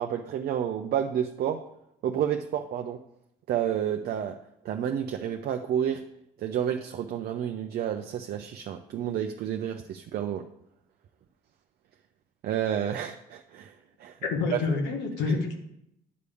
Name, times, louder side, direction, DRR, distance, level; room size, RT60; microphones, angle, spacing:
voice 1, 0.0-1.6 2.0-3.0 3.5-4.4 4.6-6.0 6.4-10.4 12.4-13.7 14.0-14.2 14.5-14.6, right 9 dB, 60° right, 5 dB, 0.6 m, -30 dB
voice 2, 14.2-15.6, left 4 dB, 85° left, 3 dB, 1.3 m, -27 dB
9.5 x 3.4 x 6.9 m, 0.80 s
supercardioid pair, 75°, 18 cm